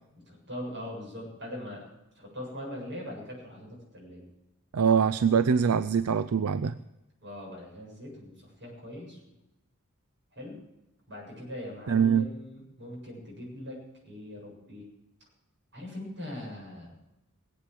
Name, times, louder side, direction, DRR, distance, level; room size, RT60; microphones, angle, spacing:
voice 1, 0.3-1.8 2.1-4.2 7.2-9.2 10.3-10.6 11.1-14.9 15.7-16.9, left 1 dB, 55° right, -2 dB, 7.6 m, -41 dB
voice 2, 4.7-6.8 11.9-12.3, right 6 dB, 80° right, 15 dB, 0.5 m, -23 dB
20.5 x 8.7 x 7.7 m, 0.93 s
head